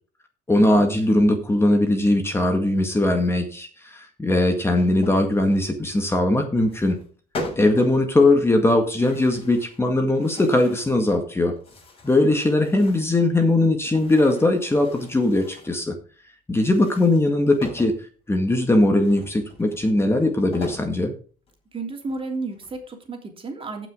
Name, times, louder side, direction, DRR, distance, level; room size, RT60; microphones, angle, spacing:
voice 1, 0.5-7.0 7.6-11.5 12.0-16.0 16.5-17.9 18.3-21.1, left 2 dB, 15° left, 4 dB, 1.9 m, -20 dB
sound 1, 4.7-5.7 6.6-7.1 7.3-8.0 9.0-9.8 10.1-11.0 11.5-13.2 13.8-15.8 16.6-18.0 19.0-20.9 21.5-21.6 22.0-22.8, left 2 dB, 35° left, 6.6 m, -39 dB
voice 2, 21.7-23.9, right 3 dB, 30° right, 3 dB, 3.1 m, -32 dB
16.5 x 6.1 x 3.8 m, 0.39 s
cardioid pair, 110°, 17 cm